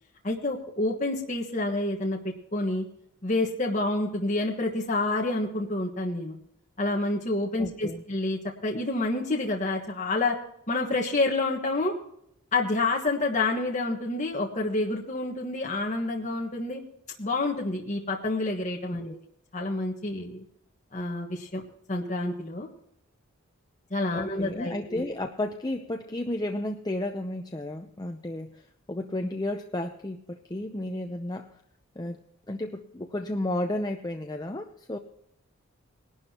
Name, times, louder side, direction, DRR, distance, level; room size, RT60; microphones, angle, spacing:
voice 1, 0.2-2.8 3.2-6.3 6.8-10.4 10.7-11.9 12.5-16.8 17.2-19.2 19.5-20.4 20.9-21.6 21.9-22.7 23.9-25.0, left 2 dB, 35° left, -1 dB, 1.4 m, -28 dB
voice 2, 7.6-8.0 18.9-19.2 24.1-31.5 32.0-32.2 32.5-35.0, left 1 dB, 20° left, 5 dB, 0.6 m, -33 dB
20.0 x 12.0 x 2.9 m, 0.74 s
head